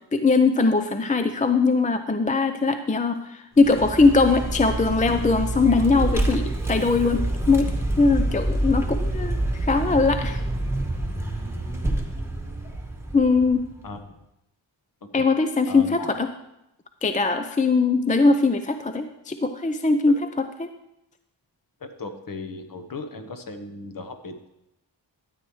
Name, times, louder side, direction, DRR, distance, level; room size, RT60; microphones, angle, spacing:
voice 1, 0.0-10.4 13.1-13.7 15.1-16.3 17.0-20.7, left 3 dB, 15° left, 8 dB, 0.5 m, -21 dB
Vehicle, 3.6-13.9, right 1 dB, 5° right, 1.4 m, -27 dB
voice 2, 13.8-14.2 15.0-15.3 15.7-16.2 20.1-20.2 21.8-24.5, left 3 dB, 45° left, 7 dB, 1.2 m, -37 dB
12.5 x 8.6 x 3.2 m, 0.86 s
cardioid pair, 65°, 47 cm